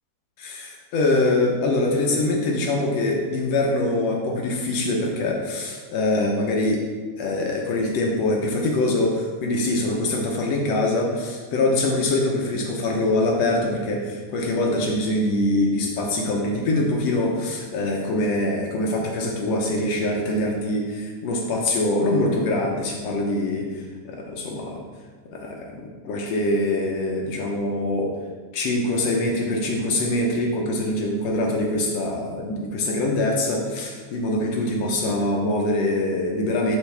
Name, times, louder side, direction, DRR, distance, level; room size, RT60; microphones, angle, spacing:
voice 1, 0.4-6.8 7.2-24.8 25.3-28.1 28.5-36.8, left 2 dB, 70° left, 0 dB, 1.7 m, -24 dB
10.5 x 4.6 x 3.4 m, 1.5 s
omnidirectional pair, 3.6 m